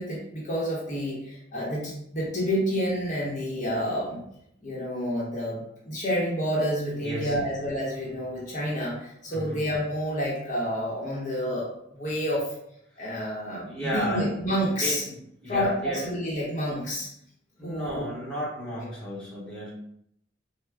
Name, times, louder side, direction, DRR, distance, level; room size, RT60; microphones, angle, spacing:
voice 1, 0.0-4.2 4.6-12.5 13.0-15.0 15.5-17.1 17.6-18.1, equal, 40° left, -5 dB, 0.9 m, -29 dB
voice 2, 7.0-7.5 9.3-9.6 13.6-16.0 17.6-19.7, equal, 5° left, -8 dB, 1.0 m, -34 dB
3.5 x 2.1 x 3.3 m, 0.72 s
head